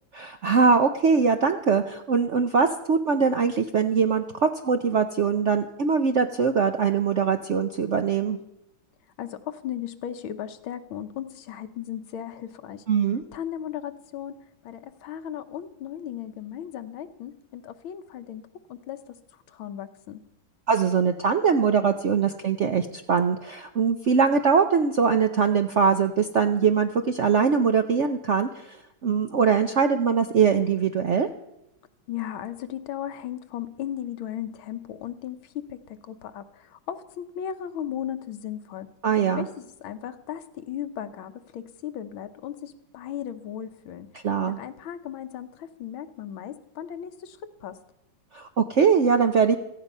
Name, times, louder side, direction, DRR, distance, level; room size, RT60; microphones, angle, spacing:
voice 1, 0.1-8.4 12.9-13.2 20.7-28.8 29.0-31.3 39.0-39.5 44.2-44.6 48.3-49.6, right 6 dB, 65° right, 7 dB, 0.7 m, -22 dB
voice 2, 9.2-12.8 13.3-18.4 18.7-19.2 19.5-20.2 32.1-38.9 39.4-44.1 44.5-47.8, left 10 dB, 90° left, 10 dB, 1.8 m, -36 dB
17.0 x 14.5 x 5.5 m, 0.85 s
omnidirectional pair, 2.2 m